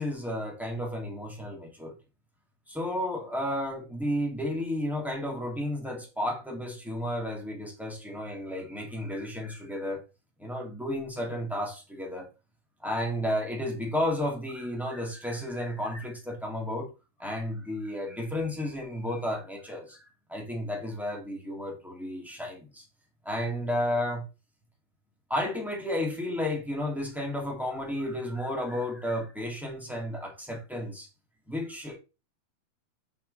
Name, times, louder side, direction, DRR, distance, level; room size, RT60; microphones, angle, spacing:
voice 1, 0.0-1.9 2.7-10.0 10.4-12.3 12.8-16.9 17.2-20.0 20.3-22.8 23.2-24.2 25.3-31.1 31.5-32.0, left 1 dB, ahead, 1.7 m, -32 dB
10.0 x 5.6 x 3.4 m
omnidirectional pair, 4.4 m